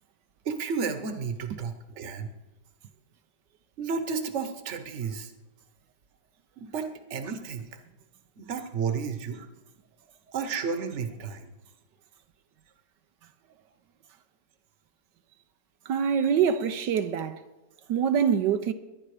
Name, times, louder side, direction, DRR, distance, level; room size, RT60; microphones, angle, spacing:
voice 1, 0.4-2.3 3.8-5.3 6.6-7.7 8.4-9.5 10.3-11.5, right 5 dB, 45° right, 1.4 m, -32 dB
voice 2, 15.9-17.4 17.9-18.7, right 7 dB, 80° right, 1.4 m, -25 dB
22.0 x 9.9 x 5.0 m
omnidirectional pair, 1.9 m